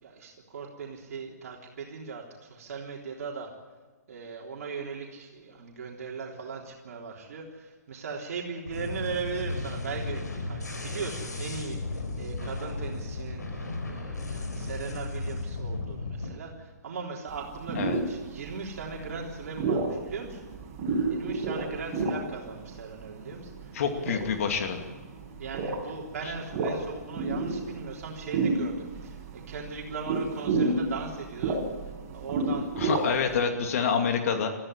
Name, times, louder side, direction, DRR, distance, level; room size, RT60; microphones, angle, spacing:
voice 1, 0.0-3.5 4.1-20.5 21.1-24.2 25.4-31.6 32.1-32.7 33.6-33.9, right 5 dB, 60° right, -1 dB, 3.6 m, -38 dB
sound 1, 8.7-16.3, left 2 dB, 90° left, 4.9 m, -35 dB
sound 2, 17.3-33.4, right 3 dB, 35° right, 5.6 m, -32 dB
voice 2, 23.7-24.8 32.8-34.5, left 6 dB, 55° left, 5 dB, 2.5 m, -27 dB
22.0 x 14.5 x 9.9 m, 1.4 s
hypercardioid pair, 135°, 9 cm